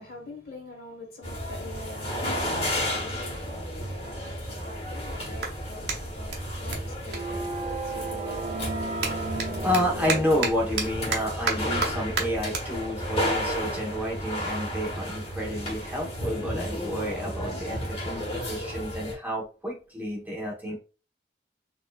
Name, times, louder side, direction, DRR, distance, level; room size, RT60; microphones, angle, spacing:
voice 1, 0.0-8.5, left 2 dB, 55° left, 1.5 m, -45 dB
sound 1, 1.2-19.1, equal, 35° left, 1.3 m, -32 dB
Clapping, 5.3-8.1 8.4-15.0, right 4 dB, 70° right, 0.9 m, -35 dB
sound 2, 5.6-11.2, right 3 dB, 40° right, 0.3 m, -35 dB
voice 2, 9.6-20.8, equal, 10° right, 1.1 m, -30 dB
4.4 x 2.7 x 2.4 m
head